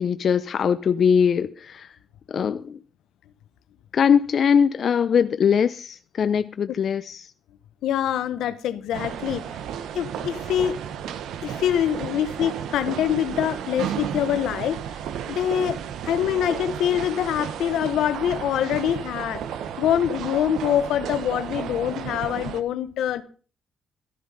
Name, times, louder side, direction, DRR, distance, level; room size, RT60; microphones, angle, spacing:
voice 1, 0.0-1.9 2.3-2.8 3.9-7.3, left 7 dB, 55° left, 0.5 m, -21 dB
voice 2, 7.8-9.4 9.9-10.8 11.4-14.8 15.3-15.8 16.0-19.4 19.8-23.2, left 10 dB, 80° left, 1.0 m, -24 dB
sound 1, 8.9-22.6, right 9 dB, 80° right, 1.0 m, -33 dB
13.0 x 11.0 x 5.5 m
cardioid pair, 90°, 0 cm